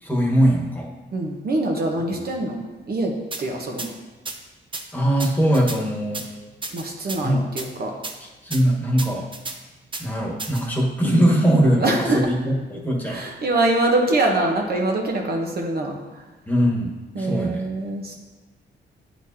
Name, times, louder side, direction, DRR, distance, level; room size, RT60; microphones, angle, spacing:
voice 1, 0.0-0.9 2.1-2.2 4.9-6.3 7.2-7.5 8.4-9.3 10.0-13.2 16.5-17.7, equal, 10° left, -3 dB, 1.4 m, -21 dB
voice 2, 1.1-3.9 6.7-7.9 11.8-12.3 13.0-16.0 17.1-18.1, right 2 dB, 50° right, 1 dB, 1.0 m, -24 dB
sound 1, 3.3-3.4 3.8-3.9 4.3-4.4 4.7-4.8 5.2-5.8 6.1-6.3 6.6-7.2 7.6-7.7 8.0-8.1 8.5-8.6 9.0-9.6 9.9-10.0 10.4-10.6, right 3 dB, 25° right, 0.7 m, -32 dB
9.2 x 4.4 x 2.8 m, 1.2 s
cardioid pair, 90°, 20 cm